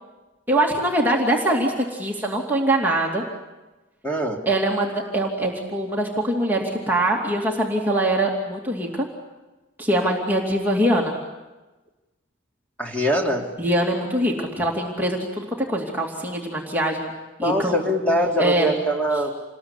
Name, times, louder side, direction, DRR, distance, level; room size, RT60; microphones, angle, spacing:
voice 1, 0.5-3.2 4.5-9.1 9.8-11.1 13.6-17.1 17.4-17.7 18.4-18.7, right 1 dB, 10° right, -2 dB, 2.7 m, -23 dB
voice 2, 4.0-4.4 12.8-13.5 17.4-19.3, equal, 5° left, 0 dB, 3.2 m, -22 dB
28.0 x 21.0 x 9.8 m, 1.2 s
head